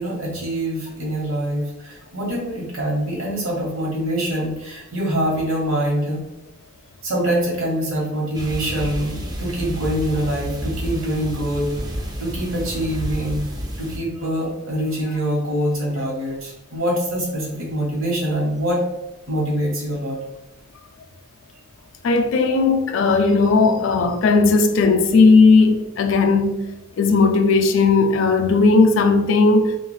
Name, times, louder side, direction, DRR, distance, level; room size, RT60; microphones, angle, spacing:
voice 1, 0.0-6.2 7.0-11.7 12.2-13.5 13.8-18.8 19.3-20.2, right 1 dB, 70° right, 1.1 m, -24 dB
sound 1, 8.3-14.0, equal, 20° right, 0.3 m, -30 dB
voice 2, 22.0-26.7 27.0-29.8, left 4 dB, 65° left, 0.3 m, -16 dB
2.4 x 2.3 x 3.1 m
head